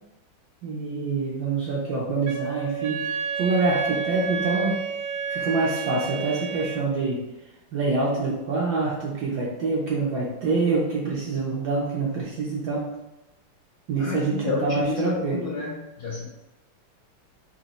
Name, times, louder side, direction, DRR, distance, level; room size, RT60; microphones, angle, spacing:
voice 1, 0.6-4.8 5.3-7.2 7.7-12.9 13.9-15.4, right 3 dB, 70° right, -4 dB, 1.0 m, -26 dB
Wind instrument woodwind instrument, 2.2-6.9, right 6 dB, 85° right, 1.4 m, -30 dB
voice 2, 14.0-16.3, left 3 dB, 80° left, -3 dB, 0.9 m, -30 dB
4.0 x 2.8 x 3.0 m, 1.0 s
omnidirectional pair, 2.3 m